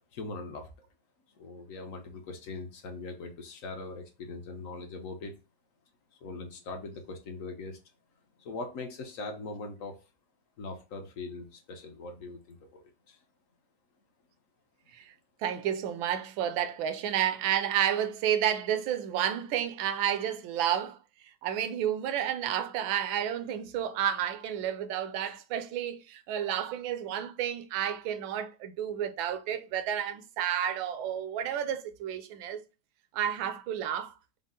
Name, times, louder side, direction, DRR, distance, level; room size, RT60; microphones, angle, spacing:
voice 1, 0.1-0.7 1.4-5.3 6.2-7.8 8.4-10.0 10.6-13.2, left 3 dB, 60° left, 0.9 m, -41 dB
voice 2, 15.4-21.0 21.4-32.6 33.1-34.1, right 10 dB, 80° right, 1.4 m, -31 dB
5.4 x 2.0 x 3.7 m
omnidirectional pair, 2.1 m